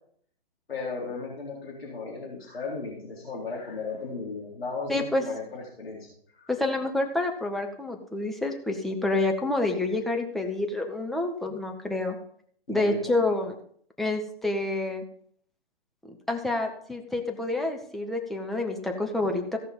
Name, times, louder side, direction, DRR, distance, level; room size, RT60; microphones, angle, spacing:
voice 1, 0.7-6.5 12.7-13.2, left 4 dB, 80° left, -4 dB, 4.1 m, -36 dB
voice 2, 4.9-5.2 6.5-12.2 12.7-13.6 14.0-15.0 16.1-19.6, left 2 dB, ahead, 2 dB, 0.9 m, -28 dB
16.5 x 5.7 x 5.3 m, 0.62 s
figure-of-eight pair, 135°, 30 cm